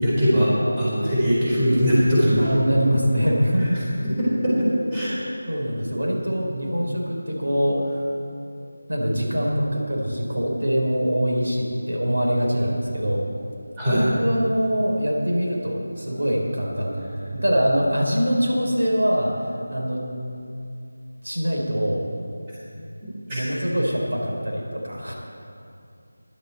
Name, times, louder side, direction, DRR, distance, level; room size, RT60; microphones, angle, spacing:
voice 1, 0.0-2.5 4.2-5.1 13.8-14.1 23.3-23.4, equal, 15° right, -9 dB, 4.1 m, -20 dB
voice 2, 2.4-3.8 5.5-8.0 8.9-13.2 13.8-19.3 19.7-20.0 21.2-22.0 23.3-25.1, equal, 85° right, -2 dB, 3.5 m, -23 dB
17.5 x 11.5 x 4.3 m, 2.5 s
figure-of-eight pair, 170°, 0 cm